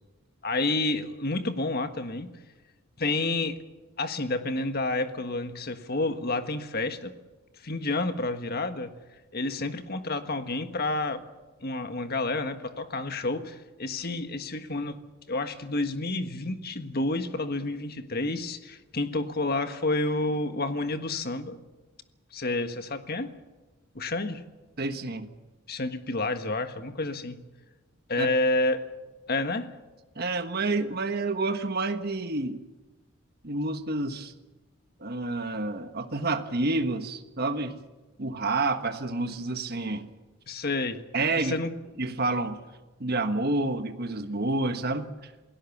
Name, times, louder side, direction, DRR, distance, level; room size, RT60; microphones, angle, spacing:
voice 1, 0.4-2.3 3.0-3.6 4.0-7.1 7.6-8.9 9.3-11.2 11.6-15.0 15.3-21.6 22.3-23.3 23.9-24.4 25.7-27.4 28.1-28.9 29.3-29.7 40.5-41.0 41.4-41.7, left 2 dB, 45° left, 8 dB, 1.5 m, -29 dB
voice 2, 24.8-25.3 28.2-28.3 30.1-32.6 33.4-34.3 35.0-37.8 38.2-40.1 41.1-41.6 42.0-42.6 43.0-45.3, right 2 dB, 45° right, 8 dB, 1.3 m, -29 dB
28.0 x 17.5 x 7.2 m, 1.2 s
head